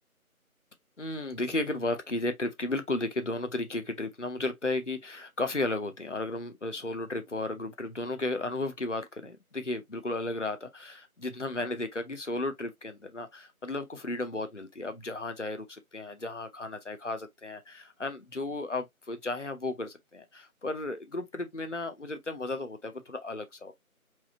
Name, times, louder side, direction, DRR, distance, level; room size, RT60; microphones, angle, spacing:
voice 1, 1.0-23.7, left 2 dB, 55° left, 0.8 m, -34 dB
4.8 x 3.3 x 2.8 m
figure-of-eight pair, 175°, 44 cm